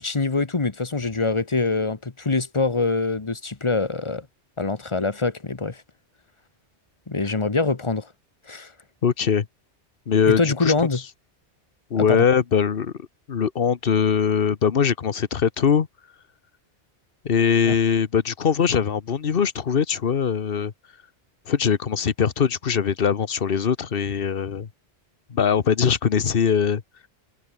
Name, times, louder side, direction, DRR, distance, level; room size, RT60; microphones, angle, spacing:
voice 1, 0.0-4.3 4.6-5.8 7.1-8.1 8.5-8.7 10.3-11.0 12.0-12.2 17.7-17.8, left 3 dB, 25° left, 1.1 m, -24 dB
voice 2, 9.0-9.5 10.1-10.7 11.9-15.9 17.2-20.7 21.5-24.7 25.3-26.8, left 7 dB, 55° left, 1.2 m, -21 dB
omnidirectional pair, 1.2 m